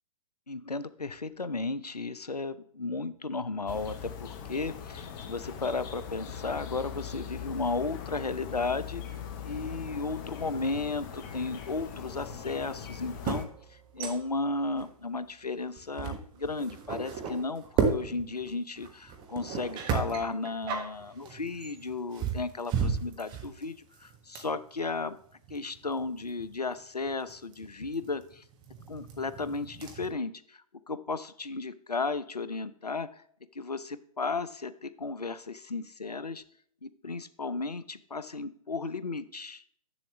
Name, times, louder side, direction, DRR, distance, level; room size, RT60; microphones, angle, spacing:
voice 1, 0.5-9.0 9.4-17.6 17.9-23.7 24.0-25.2 25.5-28.4 28.9-33.2 33.5-36.4 36.8-39.6, left 3 dB, 90° left, 15 dB, 0.6 m, -34 dB
sound 1, 3.7-13.5, left 8 dB, 30° left, 0.9 m, -41 dB
sound 2, 12.0-14.5 14.8-15.0 15.6-30.1, right 6 dB, 20° right, 1.2 m, -35 dB
7.9 x 7.1 x 3.1 m, 0.63 s
figure-of-eight pair, 120°, 20 cm